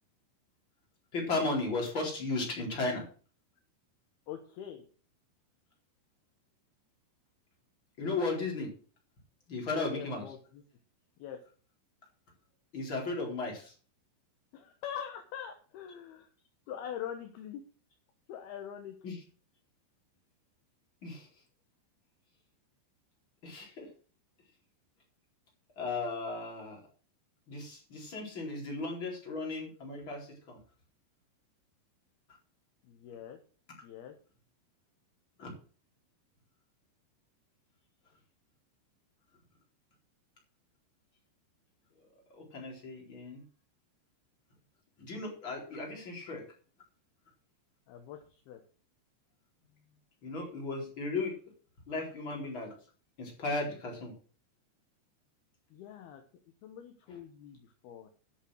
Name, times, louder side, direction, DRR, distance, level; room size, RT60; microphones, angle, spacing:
voice 1, 1.1-3.1 8.0-8.7 9.5-10.2 12.7-13.7 19.0-19.2 21.0-21.3 23.4-23.9 25.8-26.8 27.5-30.6 35.4-35.5 42.3-43.4 45.0-46.4 50.2-51.3 51.9-52.7 53.2-54.1, left 3 dB, 25° left, -1 dB, 4.4 m, -35 dB
voice 2, 4.3-4.8 9.9-10.6 11.2-11.4 14.5-16.3 16.7-17.6 18.3-19.0 32.8-33.4 33.8-34.2 47.9-48.6 55.7-56.2 56.6-58.1, left 9 dB, 70° left, 5 dB, 2.6 m, -43 dB
10.0 x 8.3 x 6.4 m, 0.40 s
omnidirectional pair, 5.5 m